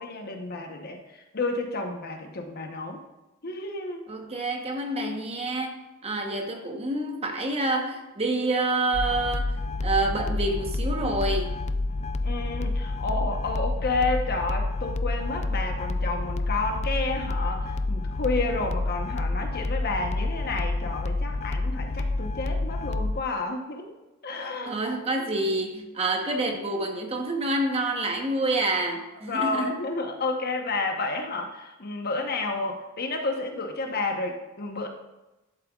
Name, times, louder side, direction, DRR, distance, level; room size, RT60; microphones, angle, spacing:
voice 1, 0.0-3.0 3.4-4.1 12.2-23.9 24.2-24.8 25.2-25.3 29.2-34.9, left 3 dB, 50° left, 4 dB, 1.0 m, -31 dB
voice 2, 4.1-5.8 6.0-11.5 24.7-29.7, right 2 dB, 30° right, 3 dB, 1.0 m, -27 dB
sound 1, 8.9-23.2, left 2 dB, 35° left, 0.3 m, -29 dB
11.5 x 7.5 x 2.4 m, 1.0 s
head